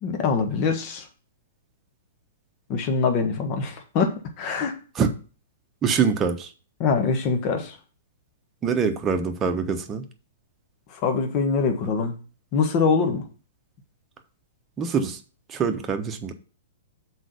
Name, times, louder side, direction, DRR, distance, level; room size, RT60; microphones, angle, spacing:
voice 1, 0.0-1.1 2.7-4.7 6.8-7.8 10.9-12.1 12.5-13.2, left 5 dB, 35° left, 5 dB, 1.5 m, -24 dB
voice 2, 5.8-6.5 8.6-10.0 14.8-15.2 15.5-16.3, right 6 dB, 20° right, 6 dB, 1.0 m, -24 dB
6.2 x 4.6 x 6.7 m, 0.36 s
figure-of-eight pair, 110°, 0 cm